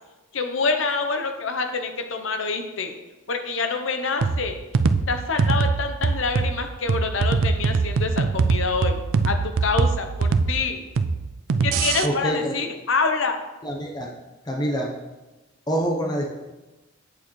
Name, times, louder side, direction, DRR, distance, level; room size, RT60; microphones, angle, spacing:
voice 1, 0.3-2.9 3.3-4.6 5.1-9.0 9.2-10.8 11.6-13.4, left 4 dB, 60° left, 6 dB, 0.8 m, -26 dB
sound 1, 4.2-12.1, right 4 dB, 60° right, 0.4 m, -23 dB
voice 2, 12.0-12.6 13.6-14.1 14.5-14.9 15.7-16.3, right 1 dB, 20° left, -1 dB, 0.9 m, -25 dB
8.6 x 6.4 x 3.2 m, 1.1 s
head